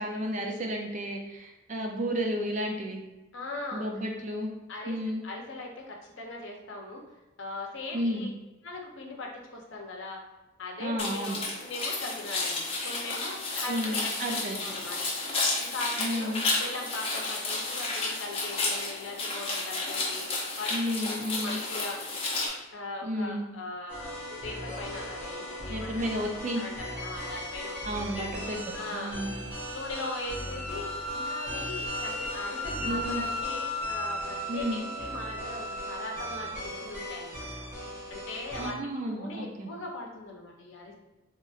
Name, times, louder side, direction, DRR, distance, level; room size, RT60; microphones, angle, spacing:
voice 1, 0.0-3.0 3.7-4.5 4.9-5.2 7.9-8.3 10.8-11.4 13.7-14.6 16.0-16.5 20.7-21.6 23.0-23.5 25.7-26.6 27.8-29.4 32.8-33.2 34.5-34.8 38.6-39.7, equal, 35° right, 1 dB, 0.4 m, -32 dB
voice 2, 3.3-3.9 4.7-5.0 5.2-7.0 7.4-8.3 8.6-10.2 10.6-15.1 15.6-16.3 16.6-20.7 21.3-22.0 22.7-26.2 26.5-28.3 28.7-29.2 29.7-37.5 38.1-41.0, left 2 dB, 65° left, 0 dB, 0.6 m, -40 dB
sound 1, 11.0-22.5, left 3 dB, 30° left, 0.6 m, -32 dB
sound 2, 23.9-38.7, equal, 10° right, 1.4 m, -39 dB
Wind instrument woodwind instrument, 28.4-36.6, left 1 dB, 55° right, 0.8 m, -37 dB
3.8 x 3.0 x 2.4 m, 1.0 s
head